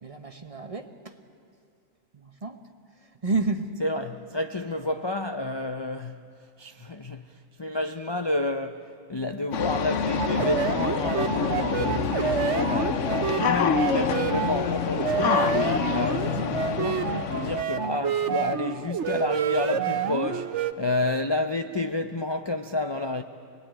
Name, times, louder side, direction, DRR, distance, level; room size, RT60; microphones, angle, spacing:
voice 1, 0.0-1.2 2.1-2.6 3.0-3.8 16.2-16.6, right 3 dB, 30° right, 1.0 m, -31 dB
voice 2, 3.8-6.2 6.6-23.2, left 2 dB, 30° left, 0.5 m, -30 dB
sound 1, 9.5-17.6, left 7 dB, 70° left, 1.2 m, -27 dB
sound 2, 10.2-20.7, right 8 dB, 65° right, 1.1 m, -28 dB
25.0 x 21.0 x 9.0 m
omnidirectional pair, 1.4 m